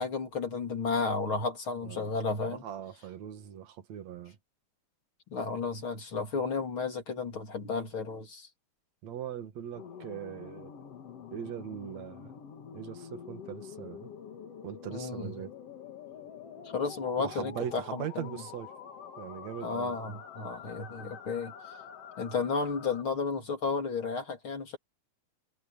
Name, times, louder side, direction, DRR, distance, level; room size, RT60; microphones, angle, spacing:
voice 1, 0.0-2.6 5.3-8.5 14.9-15.3 16.7-18.3 19.6-21.5 22.2-24.8, left 4 dB, 35° left, 3.5 m, -33 dB
voice 2, 1.8-2.1 2.4-4.4 9.0-10.7 11.3-12.3 12.7-14.1 14.6-15.5 17.2-18.7 19.2-20.2, right 9 dB, 50° right, 2.9 m, -40 dB
sound 1, 9.7-23.0, left 7 dB, 50° left, 2.1 m, -46 dB
omnidirectional pair, 4.5 m